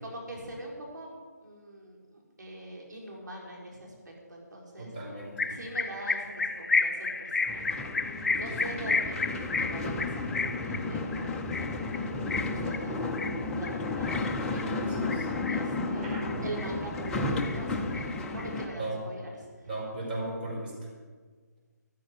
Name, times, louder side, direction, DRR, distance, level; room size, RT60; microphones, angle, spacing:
voice 1, 0.0-4.9 5.5-13.1 13.6-14.2 14.5-14.8 15.5-19.7, right 1 dB, 80° right, -1 dB, 4.1 m, -43 dB
voice 2, 4.8-5.5 8.5-8.6 14.8-15.3 16.0-16.4 18.7-19.0 19.6-20.9, right 2 dB, 30° right, -3 dB, 5.2 m, -37 dB
sound 1, 5.4-14.7 15.1-15.8 16.2-17.1 17.4-18.7, left 4 dB, 65° left, 1.3 m, -32 dB
sound 2, 7.5-18.7, left 3 dB, 5° left, 0.6 m, -33 dB
14.5 x 13.5 x 5.0 m, 1.5 s
hypercardioid pair, 165°, 10 cm